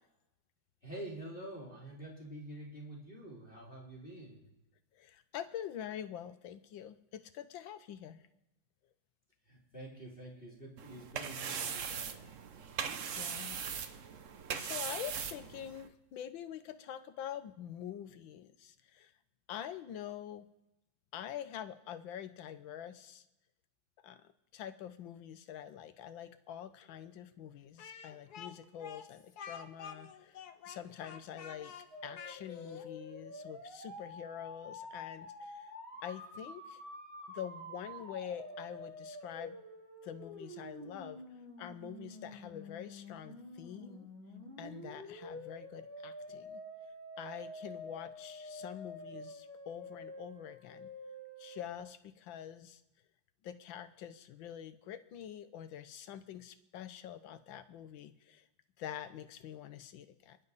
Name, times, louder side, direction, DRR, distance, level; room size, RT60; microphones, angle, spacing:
voice 1, 0.8-4.4 9.5-12.2, right 1 dB, 30° left, -3 dB, 3.3 m, -47 dB
voice 2, 4.9-8.3 13.2-13.6 14.5-19.1 19.5-20.5 21.1-23.2 24.0-24.2 24.5-30.4 30.7-31.7 32.0-35.7 36.0-36.8 37.3-39.6 40.0-41.2 41.6-44.1 44.6-46.6 47.2-50.9 51.4-52.8 53.4-58.5 58.8-60.4, left 10 dB, 85° left, 11 dB, 1.6 m, -46 dB
sound 1, 10.8-15.9, right 7 dB, 50° right, 1.0 m, -40 dB
Speech, 27.8-32.9, left 7 dB, 60° left, 1.4 m, -49 dB
sound 2, 31.9-51.8, left 1 dB, 85° right, 5.8 m, -48 dB
26.5 x 10.5 x 4.1 m, 0.95 s
omnidirectional pair, 2.1 m